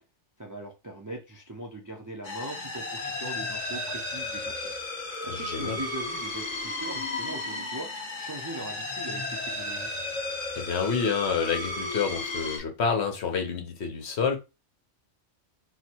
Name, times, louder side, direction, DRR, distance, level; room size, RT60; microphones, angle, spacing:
voice 1, 0.4-4.7 5.2-7.9 8.2-9.9, right 1 dB, 25° right, 0.4 m, -40 dB
sound 1, 2.2-12.6, left 2 dB, 35° left, 1.5 m, -34 dB
voice 2, 5.3-5.8 10.6-14.4, left 6 dB, 65° left, 1.2 m, -28 dB
4.5 x 2.2 x 4.4 m
omnidirectional pair, 1.3 m